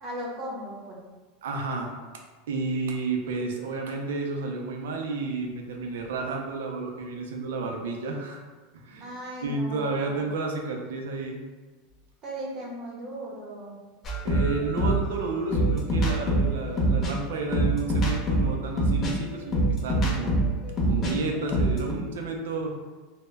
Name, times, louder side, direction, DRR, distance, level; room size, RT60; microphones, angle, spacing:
voice 1, 0.0-1.0 9.0-10.3 12.2-13.8, equal, 40° right, -3 dB, 0.6 m, -37 dB
voice 2, 1.4-8.4 8.8-9.1 9.4-11.4 14.2-20.4 20.8-22.8, right 3 dB, 90° right, 2 dB, 0.4 m, -31 dB
sound 1, 14.0-21.1 21.4-21.9, right 1 dB, 35° left, 0.7 m, -24 dB
2.0 x 2.0 x 3.4 m, 1.3 s
supercardioid pair, 125°, 0 cm